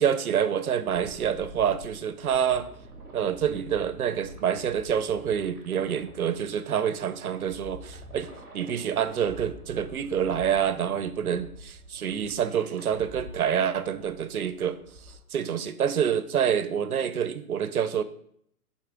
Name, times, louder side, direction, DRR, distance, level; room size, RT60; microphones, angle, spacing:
voice 1, 0.0-2.7 3.1-14.8 15.3-18.0, right 8 dB, 65° right, 12 dB, 0.8 m, -27 dB
sound 1, 0.8-15.2, equal, 5° right, 1.1 m, -47 dB
8.9 x 4.3 x 3.7 m, 0.67 s
hypercardioid pair, 170°, 46 cm